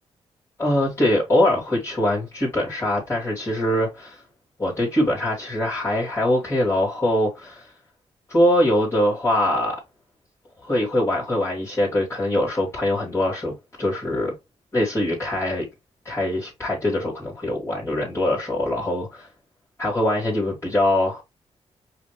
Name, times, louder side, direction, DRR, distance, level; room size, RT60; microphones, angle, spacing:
voice 1, 0.6-4.2 4.6-7.7 8.3-9.8 10.6-14.3 14.7-15.6 16.0-19.3 19.8-21.2, left 1 dB, 20° left, 2.9 m, -23 dB
4.9 x 2.8 x 3.4 m
cardioid pair, 70°, 12 cm